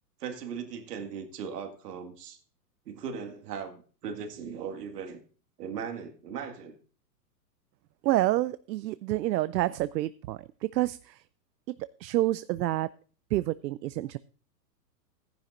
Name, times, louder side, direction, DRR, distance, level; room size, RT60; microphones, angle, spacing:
voice 1, 0.2-2.4 2.9-5.2 5.6-6.8, right 6 dB, 70° right, 5 dB, 2.1 m, -38 dB
voice 2, 8.0-10.4 10.7-11.2 12.0-12.9 13.3-14.2, right 16 dB, 85° right, 17 dB, 0.5 m, -28 dB
14.0 x 10.5 x 2.6 m, 0.40 s
hypercardioid pair, 150°, 49 cm